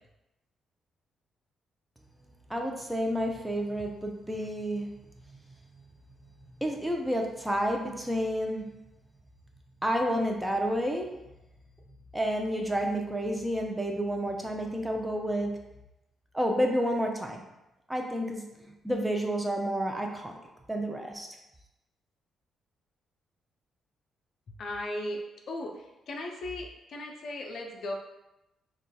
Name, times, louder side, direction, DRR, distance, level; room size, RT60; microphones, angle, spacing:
voice 1, 2.5-4.9 6.6-8.6 9.8-11.1 12.1-15.5 16.3-17.4 17.9-18.4 18.8-20.4 20.7-21.3, equal, 10° right, 2 dB, 0.6 m, -30 dB
voice 2, 24.6-27.9, left 1 dB, 60° left, 2 dB, 0.4 m, -37 dB
3.8 x 2.3 x 2.2 m, 0.93 s
hypercardioid pair, 45°, 0 cm